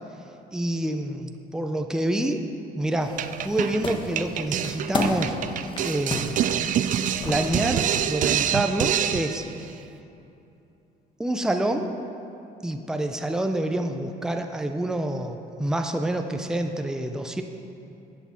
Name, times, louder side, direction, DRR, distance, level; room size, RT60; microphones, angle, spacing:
voice 1, 0.5-2.4 2.7-3.2 3.4-5.4 5.8-6.3 7.2-9.5 11.2-11.9 12.6-17.4, right 1 dB, 5° right, 5 dB, 0.6 m, -27 dB
sound 1, 3.0-8.0, left 2 dB, 30° left, 1.4 m, -33 dB
sound 2, 3.2-9.5, right 10 dB, 50° right, 0.4 m, -26 dB
14.0 x 8.4 x 4.4 m, 2.7 s
cardioid pair, 110°, 17 cm